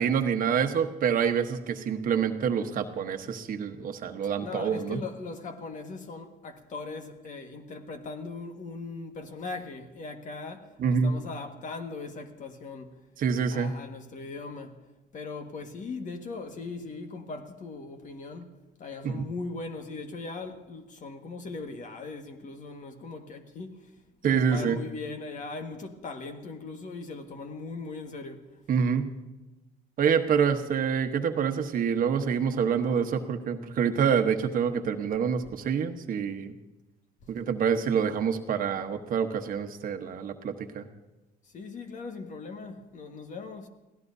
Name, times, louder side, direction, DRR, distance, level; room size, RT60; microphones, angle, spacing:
voice 1, 0.0-5.0 10.8-11.2 13.2-13.7 19.0-19.2 24.2-24.8 28.7-29.1 30.0-36.5 37.3-40.9, right 7 dB, 55° right, 1.2 m, -27 dB
voice 2, 4.4-13.0 13.5-14.8 15.1-23.9 24.2-28.5 41.5-43.7, left 3 dB, 50° left, 1.7 m, -39 dB
29.5 x 16.5 x 2.7 m
cardioid pair, 110°, 17 cm